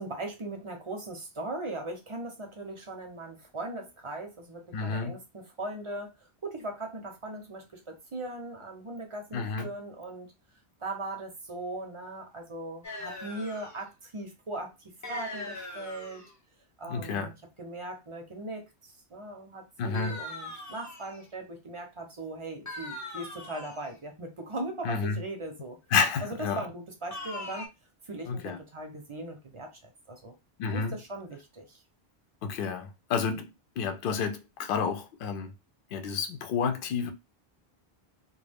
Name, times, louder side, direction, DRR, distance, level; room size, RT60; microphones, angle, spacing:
voice 1, 0.0-10.3 10.8-16.2 16.8-25.8 26.2-27.7 28.0-29.7 30.1-30.3 30.7-31.8, right 2 dB, 35° right, 0.5 m, -39 dB
voice 2, 4.7-5.2 9.3-9.7 16.9-17.3 19.8-20.2 24.8-25.2 25.9-26.7 28.3-28.6 30.6-31.0 32.4-33.5 33.8-35.5 35.9-37.1, left 6 dB, 65° left, 0.7 m, -30 dB
sound 1, 12.8-13.8 15.0-16.3 19.9-21.3 22.6-23.9 27.1-27.7, left 2 dB, 25° left, 0.4 m, -40 dB
2.3 x 2.2 x 3.3 m
omnidirectional pair, 1.1 m